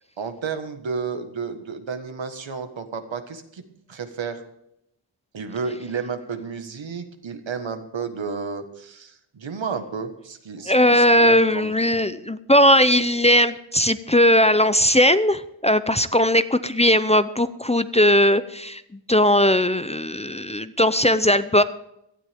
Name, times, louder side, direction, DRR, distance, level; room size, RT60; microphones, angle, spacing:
voice 1, 0.2-3.6 3.9-4.4 5.3-11.7, right 5 dB, 85° right, 7 dB, 1.6 m, -32 dB
voice 2, 10.7-18.8 19.1-21.6, left 1 dB, 15° left, 13 dB, 0.5 m, -18 dB
17.5 x 12.5 x 3.6 m, 0.80 s
wide cardioid pair, 75°, 45 cm